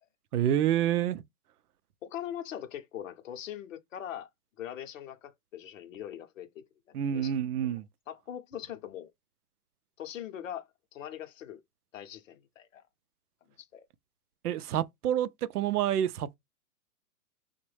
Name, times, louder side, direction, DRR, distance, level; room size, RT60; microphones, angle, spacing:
voice 1, 0.3-1.2 6.9-7.8 14.4-15.3 15.5-16.3, right 10 dB, 80° right, 0.5 m, -28 dB
voice 2, 2.0-4.3 4.6-7.3 7.7-9.1 10.0-11.6 11.9-12.8 13.6-13.8, left 10 dB, 55° left, 0.6 m, -42 dB
3.0 x 2.1 x 3.1 m
hypercardioid pair, 155°, 46 cm